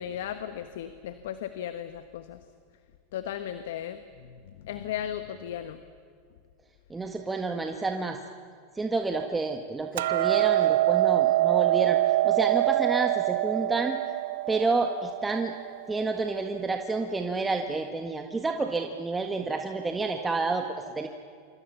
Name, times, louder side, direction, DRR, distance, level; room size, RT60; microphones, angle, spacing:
voice 1, 0.0-2.4 3.1-4.3 4.6-5.8, left 10 dB, 75° left, 10 dB, 1.3 m, -36 dB
voice 2, 6.9-8.2 8.7-12.0 12.2-14.0 14.5-15.5 15.9-21.1, right 3 dB, 15° right, 4 dB, 1.7 m, -29 dB
Hammer, 10.0-16.2, right 16 dB, 70° right, 0.6 m, -25 dB
29.0 x 25.5 x 7.1 m, 2.1 s
hypercardioid pair, 105°, 0 cm